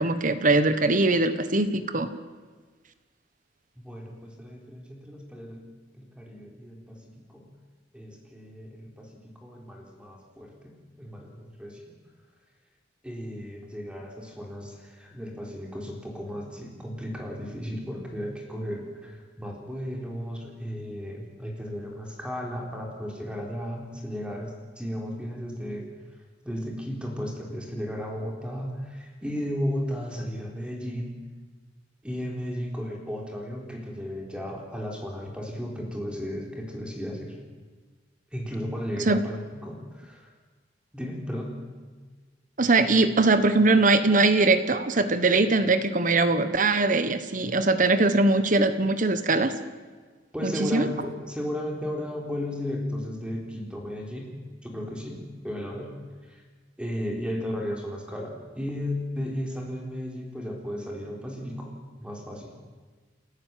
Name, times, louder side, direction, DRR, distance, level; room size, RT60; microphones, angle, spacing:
voice 1, 0.0-2.1 39.1-39.2 42.6-49.5 50.4-50.9, right 3 dB, 45° right, 11 dB, 1.3 m, -21 dB
voice 2, 3.8-5.6 5.9-7.5 7.9-11.9 13.0-25.9 26.4-31.2 32.0-37.4 38.3-40.3 40.9-41.6 50.3-54.3 54.6-56.0 56.3-56.4 56.8-62.6, equal, 5° right, 0 dB, 3.9 m, -35 dB
29.5 x 14.5 x 7.6 m, 1.4 s
head